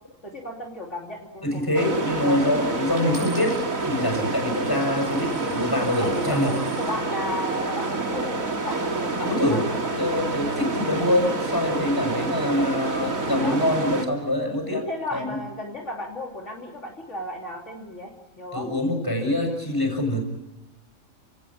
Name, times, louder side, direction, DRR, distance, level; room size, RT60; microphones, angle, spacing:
voice 1, 0.2-2.6 6.0-10.1 13.4-13.6 14.9-18.7, left 1 dB, 60° left, -1 dB, 3.4 m, -35 dB
voice 2, 1.4-6.5 9.2-9.6 10.0-15.4 18.5-20.2, left 1 dB, 15° left, 3 dB, 6.4 m, -25 dB
sound 1, 1.7-14.1, right 3 dB, 85° right, 2.9 m, -28 dB
Coin (dropping), 3.0-7.0 7.7-8.1, right 1 dB, 55° right, 5.8 m, -46 dB
29.5 x 18.0 x 8.6 m, 1.1 s
omnidirectional pair, 1.4 m